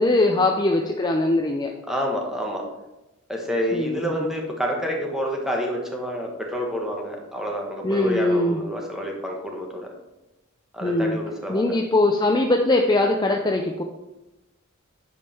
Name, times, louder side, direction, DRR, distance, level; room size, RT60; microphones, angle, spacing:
voice 1, 0.0-1.7 3.7-4.3 7.8-8.6 10.8-11.2 11.5-13.8, left 2 dB, 20° left, 2 dB, 0.5 m, -21 dB
voice 2, 1.9-2.6 3.3-9.9 10.7-11.8, equal, ahead, -1 dB, 1.4 m, -28 dB
9.7 x 5.4 x 4.4 m, 0.98 s
head